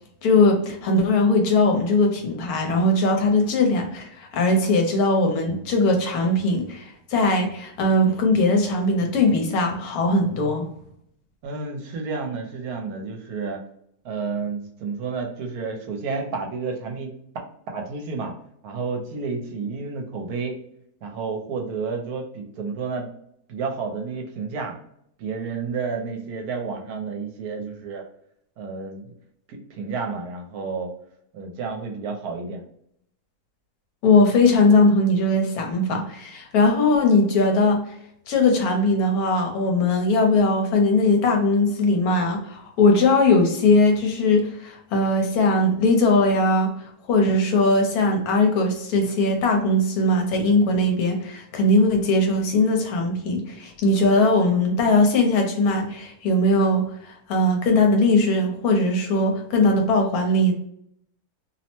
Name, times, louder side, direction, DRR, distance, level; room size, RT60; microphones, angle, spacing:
voice 1, 0.2-10.7 34.0-37.8 38.3-60.5, left 2 dB, 70° left, 3 dB, 1.1 m, -20 dB
voice 2, 11.4-13.6 14.0-17.1 17.7-18.3 18.6-20.6 21.0-23.1 23.5-24.8 25.2-28.0 28.6-29.1 29.5-30.9 31.3-32.6, right 4 dB, 75° right, 3 dB, 1.1 m, -30 dB
2.8 x 2.0 x 2.9 m, 0.70 s
omnidirectional pair, 1.7 m